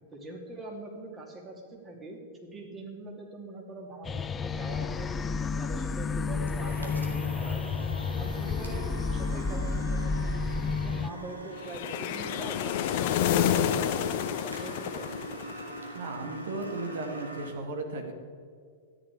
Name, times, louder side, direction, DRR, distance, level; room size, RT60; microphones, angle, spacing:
voice 1, 0.1-5.1 5.4-7.7 8.1-15.1, right 2 dB, 20° right, 0 dB, 2.8 m, -43 dB
sound 1, 4.0-11.1, left 4 dB, 20° left, 0.4 m, -31 dB
sound 2, 6.5-17.5, right 2 dB, 85° right, 2.0 m, -43 dB
sound 3, 11.6-15.9, left 10 dB, 50° left, 0.8 m, -29 dB
voice 2, 15.9-18.1, right 2 dB, 60° right, 4 dB, 2.2 m, -35 dB
13.0 x 10.5 x 4.8 m, 2.2 s
figure-of-eight pair, 105°, 0 cm